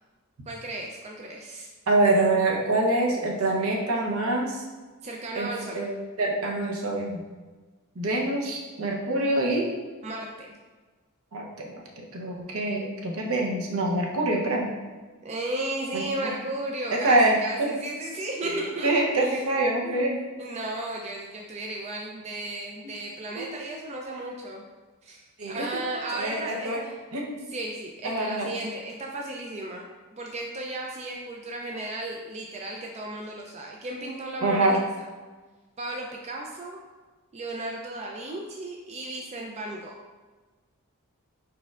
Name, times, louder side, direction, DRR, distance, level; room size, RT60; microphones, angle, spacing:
voice 1, 0.5-1.7 5.0-5.8 10.0-10.6 15.2-19.4 19.8-20.0 20.4-24.6 25.0-27.0 27.5-29.8 30.1-34.8 35.8-36.8 37.3-39.9, right 1 dB, 30° right, 0 dB, 0.4 m, -35 dB
voice 2, 1.9-4.6 5.3-5.5 5.7-7.2 8.0-9.7 11.3-14.7 15.9-16.3 16.9-17.8 18.4-20.2 23.4-23.5 25.4-25.7 26.1-26.8 27.1-27.4 28.0-28.5 34.4-34.8, right 2 dB, 70° right, -1 dB, 0.8 m, -25 dB
4.4 x 4.3 x 2.4 m, 1.3 s
head